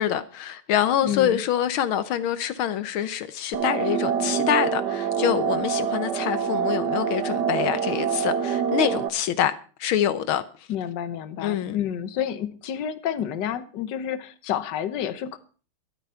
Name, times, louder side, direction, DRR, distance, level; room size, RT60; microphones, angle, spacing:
voice 1, 0.0-9.5 9.8-10.4 11.4-11.8, left 10 dB, 80° left, 1.6 m, -25 dB
voice 2, 1.0-1.4 10.7-15.4, left 9 dB, 60° left, 1.6 m, -29 dB
sound 1, 3.5-9.1, right 7 dB, 60° right, 1.6 m, -25 dB
12.5 x 12.5 x 5.6 m
omnidirectional pair, 2.3 m